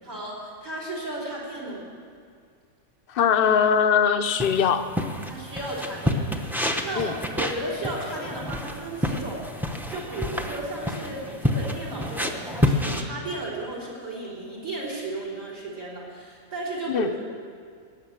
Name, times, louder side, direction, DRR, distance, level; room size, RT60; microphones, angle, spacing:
voice 1, 0.0-1.9 5.3-17.2, right 2 dB, 60° right, -4 dB, 4.1 m, -34 dB
voice 2, 3.1-4.9 7.0-7.1 16.9-17.1, left 7 dB, 50° left, 9 dB, 0.7 m, -21 dB
sound 1, 4.4-13.0, left 1 dB, ahead, 0.6 m, -29 dB
18.0 x 6.8 x 8.7 m, 2.2 s
omnidirectional pair, 1.5 m